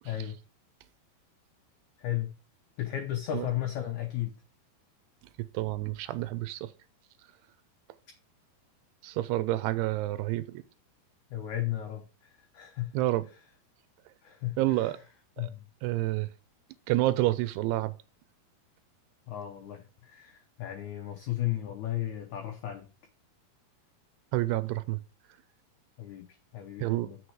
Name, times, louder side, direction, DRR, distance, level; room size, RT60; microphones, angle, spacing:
voice 1, 0.1-0.4 2.0-2.3 2.8-4.3 11.3-12.0 12.5-12.9 14.2-14.9 15.4-15.6 19.3-22.9 26.0-26.3 26.5-27.2, left 13 dB, 70° left, 1.9 m, -34 dB
voice 2, 5.5-6.7 9.0-10.6 12.9-13.2 14.6-15.0 15.4-15.5 15.8-16.3 16.9-17.9 24.3-25.0 26.8-27.1, right 16 dB, 85° right, 2.7 m, -28 dB
7.5 x 6.3 x 4.8 m
omnidirectional pair, 4.6 m